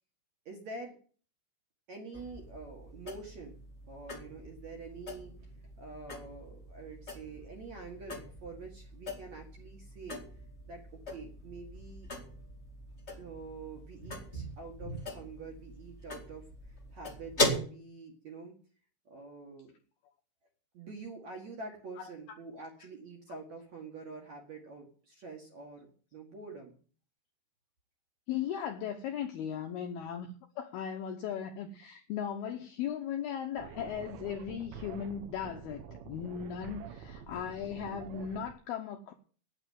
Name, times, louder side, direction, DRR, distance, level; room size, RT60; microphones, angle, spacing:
voice 1, 0.5-0.9 1.9-3.6 3.9-5.3 5.8-10.2 10.7-10.8 11.1-12.1 13.2-16.5 16.9-18.5 19.1-19.7 20.7-26.8, right 3 dB, 55° right, 1 dB, 2.2 m, -46 dB
sound 1, 2.1-17.6, left 1 dB, 45° left, 0.8 m, -40 dB
voice 2, 28.3-39.1, left 8 dB, 80° left, 4 dB, 2.3 m, -37 dB
sound 2, 33.6-38.5, right 7 dB, 75° right, 3.0 m, -47 dB
9.2 x 9.0 x 9.1 m, 0.42 s
omnidirectional pair, 5.6 m